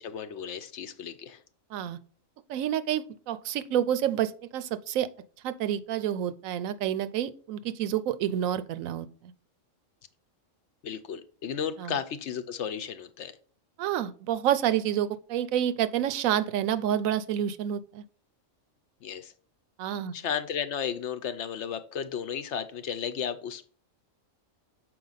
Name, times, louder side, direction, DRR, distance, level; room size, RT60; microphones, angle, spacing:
voice 1, 0.0-1.4 10.8-13.3 19.0-19.3 20.1-23.7, left 8 dB, 65° left, 0.8 m, -34 dB
voice 2, 2.5-5.1 5.4-9.3 11.8-12.0 13.8-18.0 19.8-20.1, right 10 dB, 80° right, 1.0 m, -29 dB
6.8 x 4.6 x 3.9 m
omnidirectional pair, 1.4 m